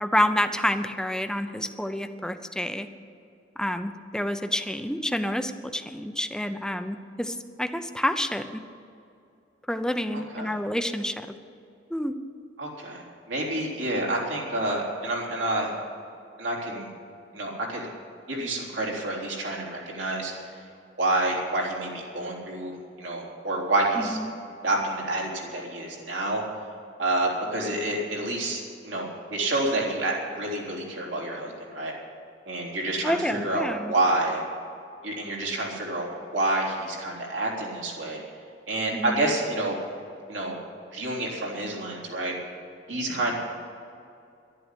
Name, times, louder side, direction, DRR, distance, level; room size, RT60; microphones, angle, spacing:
voice 1, 0.0-2.9 3.6-8.5 9.7-11.3 11.9-12.1 24.0-24.3 33.0-33.9 38.9-39.3, left 1 dB, 5° left, 8 dB, 0.7 m, -28 dB
voice 2, 10.1-10.6 12.6-15.7 16.4-16.9 17.3-17.9 18.3-20.3 21.0-24.2 24.6-26.4 27.0-31.9 32.5-34.4 35.0-36.1 36.3-38.2 38.7-39.8 40.3-40.6 40.9-42.4 42.9-43.3, right 2 dB, 80° right, -3 dB, 3.7 m, -28 dB
11.5 x 11.0 x 8.5 m, 2.5 s
head